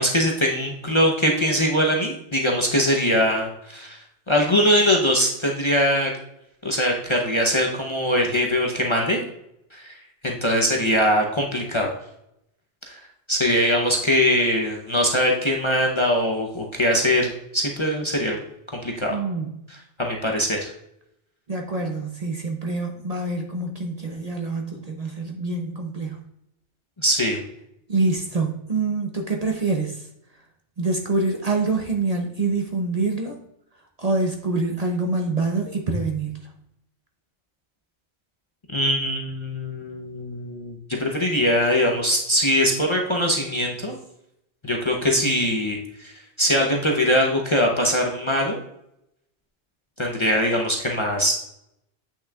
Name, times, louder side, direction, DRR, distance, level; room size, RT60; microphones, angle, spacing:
voice 1, 0.0-4.0 4.3-6.1 6.6-9.3 9.7-10.0 10.2-11.9 12.9-13.0 13.3-18.4 18.8-19.2 19.7-20.7 27.0-27.4 38.7-44.0 44.6-46.1 46.4-48.6 50.0-51.3, equal, 30° left, -1 dB, 0.7 m, -22 dB
voice 2, 19.1-19.6 21.5-26.2 27.9-30.0 30.8-33.4 34.0-36.4, right 3 dB, 40° right, 1 dB, 0.7 m, -25 dB
8.3 x 6.1 x 2.3 m, 0.81 s
omnidirectional pair, 1.2 m